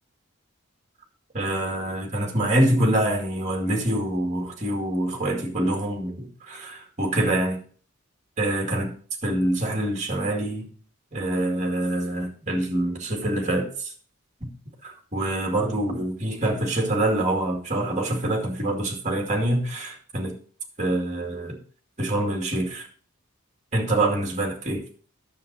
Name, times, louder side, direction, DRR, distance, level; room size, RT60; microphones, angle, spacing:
voice 1, 1.3-7.6 8.4-8.9 9.2-10.7 11.1-13.9 14.4-14.5 14.8-20.3 20.8-21.6 22.0-22.9 23.7-24.8, right 1 dB, 35° right, 2.1 m, -25 dB
9.5 x 7.1 x 4.1 m
head